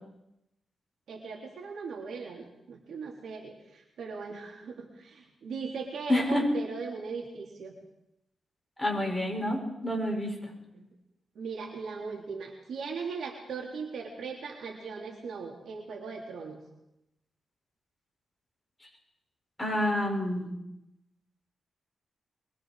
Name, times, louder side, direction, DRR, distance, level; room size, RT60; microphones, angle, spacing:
voice 1, 1.1-7.7 10.7-10.9 11.3-16.6, right 5 dB, 85° right, 0 dB, 3.1 m, -39 dB
voice 2, 6.1-6.4 8.8-10.3 19.6-20.5, left 1 dB, 15° left, 0 dB, 6.9 m, -28 dB
24.0 x 23.0 x 4.9 m, 0.87 s
cardioid pair, 85°, 0 cm